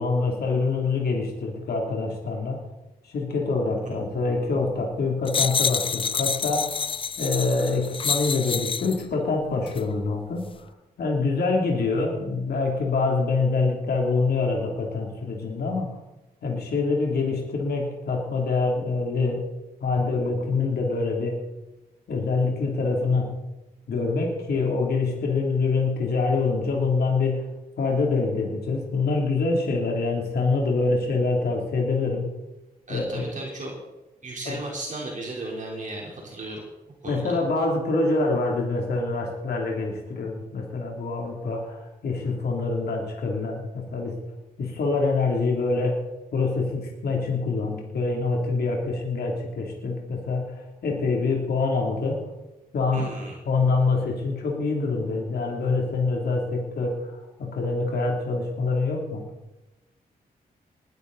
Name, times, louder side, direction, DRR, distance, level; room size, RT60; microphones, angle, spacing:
voice 1, 0.0-2.6 3.0-10.5 11.0-16.0 16.4-19.4 19.8-21.4 22.1-23.3 23.9-27.5 27.8-32.3 32.9-33.3 34.4-34.6 37.0-44.1 44.6-46.0 46.3-52.3 52.7-53.1 53.5-59.2, left 3 dB, 85° left, -1 dB, 3.2 m, -25 dB
sound 1, 5.3-9.0 9.7-9.8, left 6 dB, 35° left, 0.4 m, -27 dB
voice 2, 32.9-33.7 34.2-36.6 37.0-37.3 52.9-53.4, right 2 dB, 50° right, -2 dB, 4.0 m, -35 dB
20.5 x 12.0 x 4.1 m, 1.0 s
wide cardioid pair, 115°, 16 cm